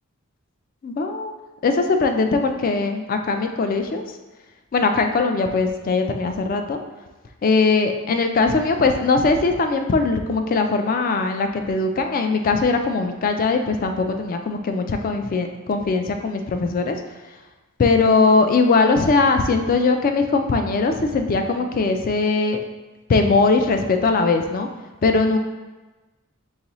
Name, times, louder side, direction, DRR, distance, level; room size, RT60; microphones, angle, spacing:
voice 1, 0.8-1.3 1.6-4.0 4.7-6.8 7.4-17.0 17.8-22.6 23.1-24.7 25.0-25.4, left 3 dB, 40° left, 6 dB, 0.3 m, -20 dB
4.0 x 3.7 x 2.9 m, 1.2 s
head